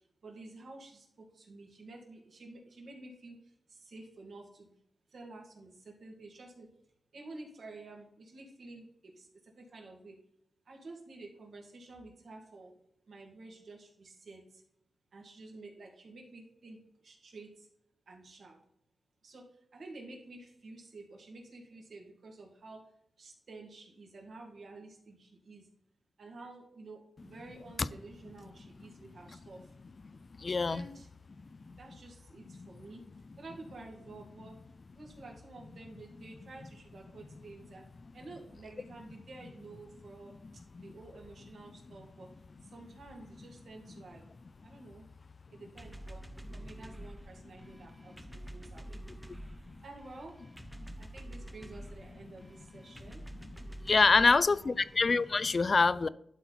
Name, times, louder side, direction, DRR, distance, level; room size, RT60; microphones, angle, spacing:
voice 1, 0.2-3.4 3.7-4.7 5.1-6.7 7.1-10.2 10.7-12.7 13.1-14.6 15.1-17.7 18.1-18.6 19.2-19.5 19.7-22.9 23.2-25.7 26.2-29.7 30.7-31.1 31.8-33.0 33.4-34.6 34.9-37.8 38.1-40.3 40.8-42.3 42.6-44.2 44.6-45.1 45.5-46.2 46.5-49.0 49.8-50.4 51.0-53.2 54.0-54.8, right 2 dB, 70° right, 0 dB, 2.3 m, -50 dB
voice 2, 30.4-30.9 31.7-31.8 32.5-32.7 40.8-40.9 49.3-49.4 49.7-49.8 50.8-50.9 53.8-56.1, left 4 dB, 50° left, 18 dB, 0.4 m, -26 dB
sound 1, 45.8-55.3, right 1 dB, 10° right, 0.7 m, -48 dB
11.5 x 4.1 x 4.2 m, 0.75 s
cardioid pair, 55°, 0 cm